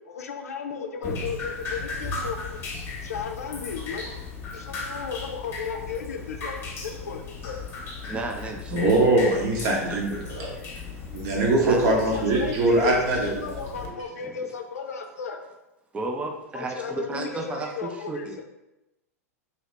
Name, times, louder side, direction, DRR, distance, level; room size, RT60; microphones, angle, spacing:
voice 1, 0.1-2.6 3.0-4.1 4.5-7.5 11.6-15.4 16.5-18.4, left 6 dB, 70° left, 5 dB, 0.4 m, -34 dB
Drip, 1.0-13.9, left 4 dB, 30° left, 0.9 m, -36 dB
voice 2, 8.0-9.0 9.8-11.1 11.6-11.9 12.2-12.3 14.2-14.4 15.9-18.4, right 2 dB, 15° right, 3 dB, 0.4 m, -34 dB
voice 3, 8.7-10.5 11.0-13.9, right 2 dB, 45° right, -1 dB, 0.9 m, -23 dB
2.9 x 2.8 x 3.2 m, 0.95 s
figure-of-eight pair, 95°, 9 cm